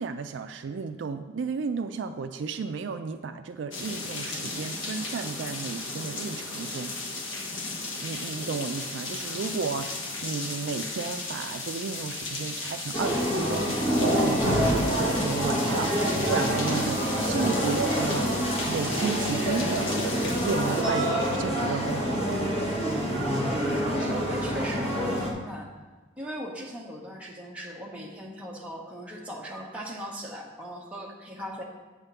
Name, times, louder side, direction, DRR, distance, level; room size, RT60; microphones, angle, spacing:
voice 1, 0.0-7.0 8.0-18.3 18.7-20.0 20.4-22.2, right 5 dB, 65° right, 8 dB, 0.3 m, -33 dB
sound 1, 3.7-20.8, left 3 dB, 80° left, 1.2 m, -35 dB
sound 2, 12.9-25.3, equal, 30° left, 1.2 m, -26 dB
voice 2, 23.4-25.7 26.2-31.6, equal, 5° right, -3 dB, 1.0 m, -38 dB
8.1 x 3.6 x 6.7 m, 1.3 s
head